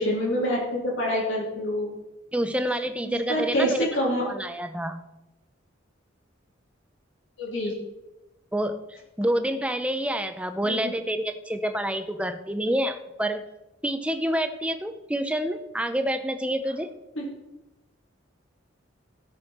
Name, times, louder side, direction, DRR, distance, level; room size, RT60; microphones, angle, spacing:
voice 1, 0.0-1.9 3.0-4.2 7.4-7.7 10.6-10.9 17.1-17.2, equal, 80° left, -4 dB, 3.5 m, -26 dB
voice 2, 2.3-3.9 4.2-5.0 8.5-13.5 13.8-16.9, right 1 dB, 5° right, 8 dB, 0.6 m, -28 dB
16.0 x 6.3 x 4.4 m, 0.97 s
head